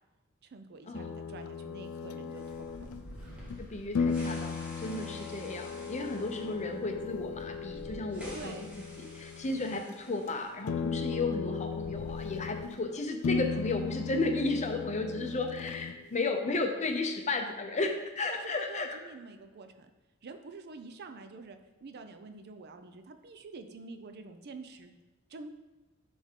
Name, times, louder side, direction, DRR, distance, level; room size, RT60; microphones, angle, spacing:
voice 1, 0.4-3.3 4.8-5.2 8.3-8.7 15.1-15.4 18.3-19.9 20.2-24.9 25.3-25.5, right 3 dB, 50° right, 8 dB, 0.5 m, -47 dB
sound 1, 0.9-3.6 3.9-9.8 10.1-10.3 10.6-12.8 13.2-16.2, left 5 dB, 75° left, 0.4 m, -36 dB
sound 2, 2.3-10.5 10.8-10.9 11.5-12.9, equal, 5° right, 1.4 m, -50 dB
voice 2, 3.6-8.7 9.0-19.0, left 2 dB, 35° left, 5 dB, 0.7 m, -33 dB
9.9 x 3.4 x 3.7 m, 1.1 s
head